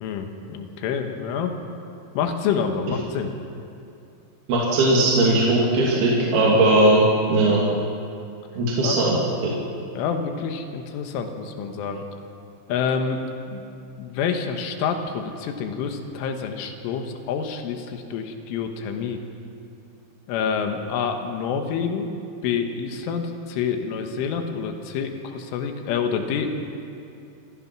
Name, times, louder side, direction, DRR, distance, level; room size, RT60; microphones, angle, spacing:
voice 1, 0.0-1.6 2.2-3.3 8.8-9.0 10.0-12.0 12.7-13.2 13.5-13.7 14.0-19.2 20.3-22.1 22.4-26.6, left 6 dB, 85° left, 5 dB, 3.8 m, -27 dB
voice 2, 4.5-7.0 7.3-7.6 8.6-9.2 9.4-9.5, right 2 dB, 55° right, -4 dB, 4.2 m, -18 dB
27.5 x 15.5 x 6.0 m, 2.5 s
omnidirectional pair, 5.6 m